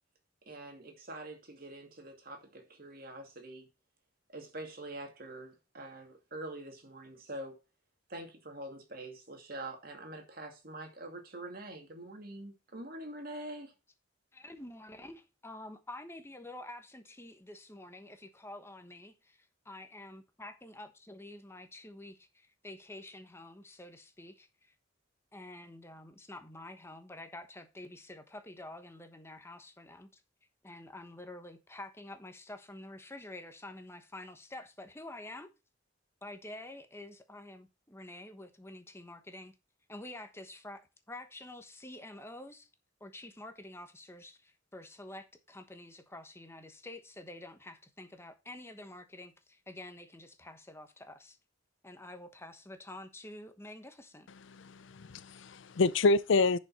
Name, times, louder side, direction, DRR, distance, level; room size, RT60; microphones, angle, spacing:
voice 1, 0.5-3.7 4.3-7.6 8.1-13.7, right 1 dB, 50° right, 2.4 m, -45 dB
voice 2, 14.3-24.7 25.3-30.2 30.6-35.5 36.2-39.5 39.9-42.7 43.0-51.4 51.8-54.3, left 1 dB, 15° left, 1.1 m, -48 dB
voice 3, 54.6-56.6, left 3 dB, 70° left, 0.5 m, -27 dB
10.5 x 5.4 x 4.2 m
head